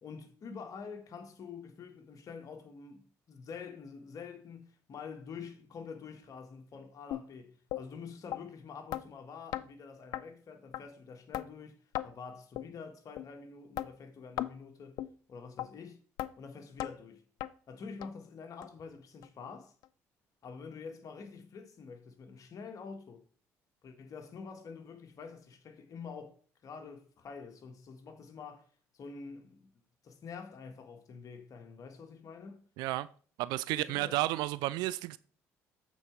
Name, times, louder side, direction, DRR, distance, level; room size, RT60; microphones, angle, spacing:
voice 1, 0.0-15.0 15.3-16.0 16.4-17.2 17.7-19.7 20.4-23.2 23.8-26.4 26.6-28.7 28.9-29.7 30.0-32.7 33.7-34.2, left 5 dB, 50° left, 1.5 m, -47 dB
sound 1, 7.1-7.2 7.7-7.8 8.3-8.4 8.9-9.0 9.5-9.7 10.1-10.2 10.7-10.8 11.3-11.5 11.9-12.1 12.6-12.7 13.2-13.3 13.8-13.9 14.4-14.5 15.0-15.1 15.6-15.7 16.2-16.3 16.8-16.9 17.4-17.5 18.0-18.1 18.6-18.7 19.2-19.3 19.8-19.9, left 14 dB, 70° left, 0.4 m, -36 dB
voice 2, 32.8-33.1 33.4-35.2, right 17 dB, 75° right, 0.4 m, -32 dB
8.0 x 4.2 x 4.6 m
hypercardioid pair, 60°, 7 cm